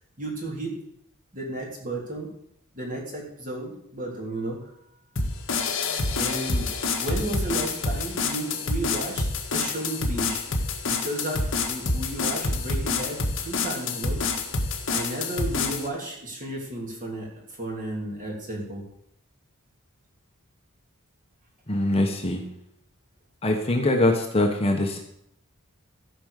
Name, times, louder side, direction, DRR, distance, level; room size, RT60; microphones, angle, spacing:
voice 1, 0.2-0.8 1.3-2.3 2.7-4.6 6.1-6.7 7.0-9.3 9.5-10.5 10.8-14.2 14.9-17.3 17.6-18.8, right 1 dB, 35° right, -1 dB, 3.2 m, -33 dB
sound 1, 5.2-15.9, left 3 dB, 60° left, 1.6 m, -27 dB
voice 2, 21.7-22.4 23.4-25.0, left 1 dB, 25° left, 2 dB, 1.2 m, -23 dB
14.5 x 5.1 x 6.6 m, 0.73 s
head